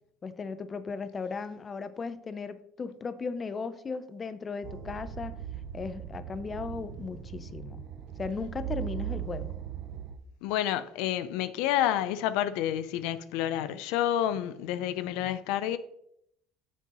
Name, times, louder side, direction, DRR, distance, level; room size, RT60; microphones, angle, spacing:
voice 1, 0.2-5.4 5.7-7.8 8.2-9.5, left 4 dB, 25° left, 0.5 m, -36 dB
sound 1, 4.6-10.2, right 10 dB, 55° right, 0.8 m, -39 dB
voice 2, 10.4-15.8, left 11 dB, 80° left, 0.4 m, -29 dB
9.0 x 7.3 x 3.0 m
cardioid pair, 130°, 0 cm